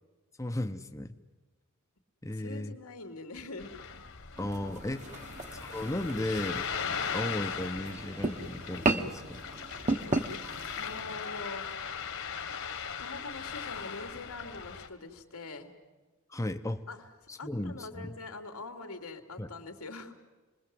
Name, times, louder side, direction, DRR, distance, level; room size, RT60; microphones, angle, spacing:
voice 1, 0.4-1.1 2.2-2.7 4.4-5.1 5.5-6.7 7.1-9.4 16.3-16.8 17.3-18.1 19.4-19.5, left 1 dB, 15° left, 5 dB, 0.8 m, -35 dB
voice 2, 2.3-4.0 4.9-5.4 10.7-11.7 13.0-15.7 16.9-17.1 17.4-20.1, left 3 dB, 90° left, 6 dB, 2.8 m, -44 dB
Ocean, 3.6-14.9, left 7 dB, 60° left, 1.7 m, -39 dB
sound 1, 4.3-11.0, right 2 dB, 35° right, 1.2 m, -35 dB
28.0 x 21.5 x 7.8 m, 1.2 s
head